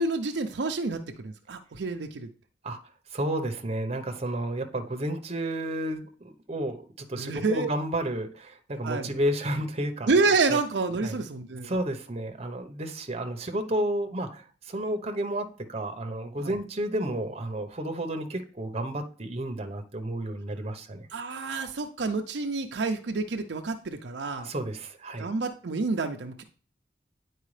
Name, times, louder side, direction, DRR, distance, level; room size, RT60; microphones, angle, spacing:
voice 1, 0.0-2.3 7.1-7.7 8.8-9.1 10.1-11.7 16.4-16.5 21.1-24.5 25.2-26.4, right 3 dB, 75° right, 5 dB, 0.6 m, -28 dB
voice 2, 3.1-10.1 10.5-10.6 11.0-11.2 11.6-21.1 24.4-25.3, right 1 dB, 35° right, 6 dB, 0.9 m, -31 dB
9.9 x 4.6 x 3.2 m, 0.41 s
head